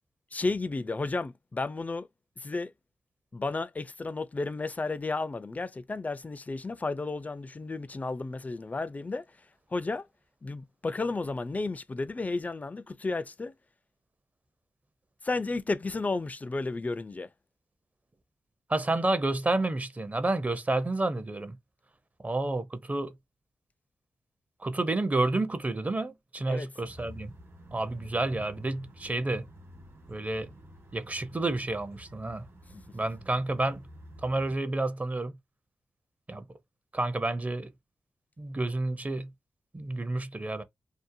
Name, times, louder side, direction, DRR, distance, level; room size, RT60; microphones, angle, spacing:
voice 1, 0.3-2.1 2.4-2.7 3.3-9.2 9.7-10.0 10.4-13.5 15.2-17.3 26.5-26.7 32.7-33.0, left 3 dB, 30° left, 0.3 m, -33 dB
voice 2, 18.7-21.6 22.2-23.1 24.6-27.3 27.7-29.5 30.1-30.5 30.9-32.4 32.9-33.8 34.2-35.3 36.3-36.5 36.9-37.7 38.4-39.3 39.7-40.6, right 2 dB, 30° right, 0.5 m, -30 dB
sound 1, 26.8-34.6, equal, 55° right, 1.1 m, -50 dB
2.7 x 2.1 x 2.5 m
supercardioid pair, 45°, 5 cm